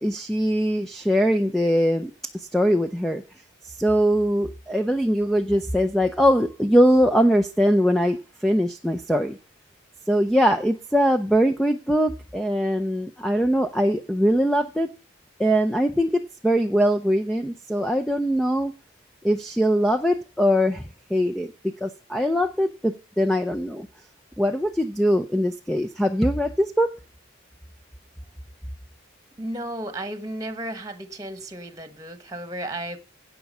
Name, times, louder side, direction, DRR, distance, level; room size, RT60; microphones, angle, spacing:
voice 1, 0.0-3.2 3.6-9.4 10.1-14.9 15.4-18.7 19.2-20.8 21.1-23.9 24.4-26.9, equal, ahead, 0.5 m, -22 dB
voice 2, 29.4-33.0, right 1 dB, 15° right, 1.3 m, -33 dB
16.5 x 6.0 x 5.5 m
head